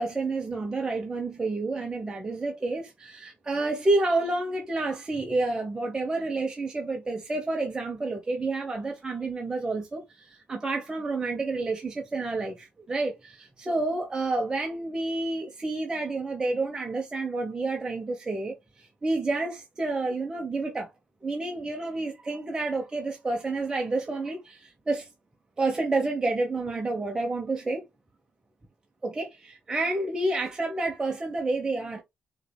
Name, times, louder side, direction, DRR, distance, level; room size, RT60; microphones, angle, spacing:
voice 1, 0.0-20.9 21.2-25.1 25.6-27.8 29.0-32.0, right 2 dB, 20° right, 0.9 m, -29 dB
6.4 x 3.2 x 2.2 m
cardioid pair, 105°, 3 cm